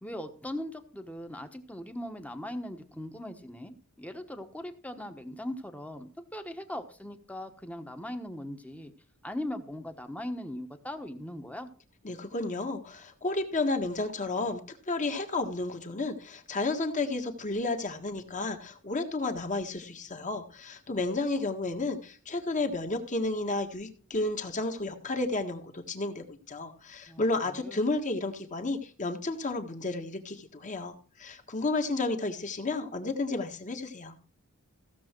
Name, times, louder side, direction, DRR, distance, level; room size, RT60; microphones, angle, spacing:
voice 1, 0.0-8.9 9.2-11.7 27.1-27.8, left 1 dB, 5° left, 7 dB, 1.2 m, -39 dB
voice 2, 12.0-14.6 14.9-34.1, left 2 dB, 35° left, 5 dB, 1.7 m, -32 dB
16.0 x 7.1 x 4.5 m, 0.41 s
head